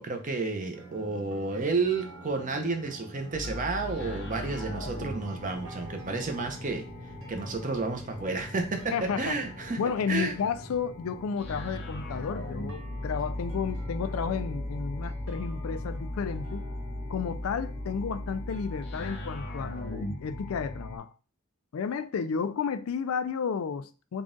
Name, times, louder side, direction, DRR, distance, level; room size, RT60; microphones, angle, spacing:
voice 1, 0.0-6.8 7.3-9.8 10.1-10.3, right 3 dB, 40° right, 0.7 m, -31 dB
sound 1, 0.7-19.4, right 2 dB, 70° right, 0.9 m, -48 dB
sound 2, 3.3-21.0, left 1 dB, 55° left, 0.8 m, -38 dB
voice 2, 8.9-9.4 9.8-16.7 17.1-21.1 21.7-24.2, left 6 dB, 80° left, 0.4 m, -32 dB
3.7 x 2.4 x 3.8 m
head